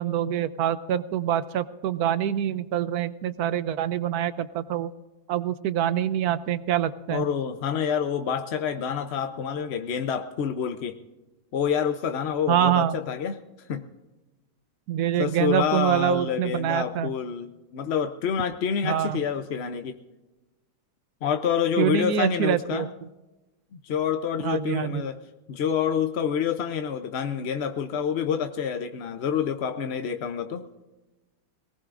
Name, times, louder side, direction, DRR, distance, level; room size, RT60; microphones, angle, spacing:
voice 1, 0.0-4.9 5.3-7.3 12.5-13.0 14.9-17.1 18.8-19.2 21.8-22.9 24.4-25.0, right 10 dB, 70° right, 14 dB, 1.0 m, -25 dB
voice 2, 7.1-11.0 11.5-13.4 13.7-13.8 15.2-20.0 21.2-22.9 23.8-25.2 25.5-30.7, left 7 dB, 60° left, 7 dB, 0.7 m, -27 dB
22.0 x 18.5 x 2.5 m, 1.1 s
omnidirectional pair, 1.9 m